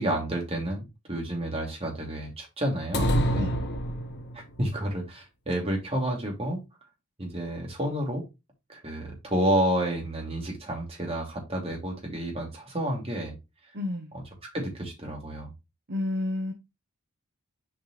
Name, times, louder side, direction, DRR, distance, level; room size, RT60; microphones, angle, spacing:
voice 1, 0.0-3.5 4.3-6.6 7.2-8.2 8.7-13.4 14.1-15.5, right 1 dB, 25° right, 2.8 m, -30 dB
sound 1, 2.9-4.5, equal, 50° left, 1.2 m, -26 dB
voice 2, 13.7-14.1 15.9-16.5, left 2 dB, 50° right, 0.9 m, -30 dB
7.0 x 5.3 x 3.2 m
head